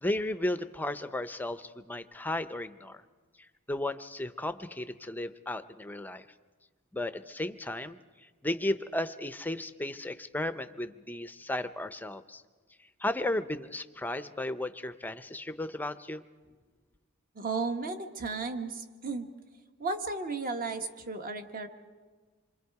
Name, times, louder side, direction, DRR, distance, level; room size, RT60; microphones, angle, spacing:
voice 1, 0.0-3.0 3.7-6.2 6.9-8.0 8.4-12.4 13.0-16.2, left 1 dB, 10° left, 11 dB, 0.5 m, -34 dB
voice 2, 17.3-19.3 19.8-21.7, right 3 dB, 40° right, 7 dB, 1.3 m, -34 dB
27.0 x 23.5 x 4.7 m, 1.4 s
head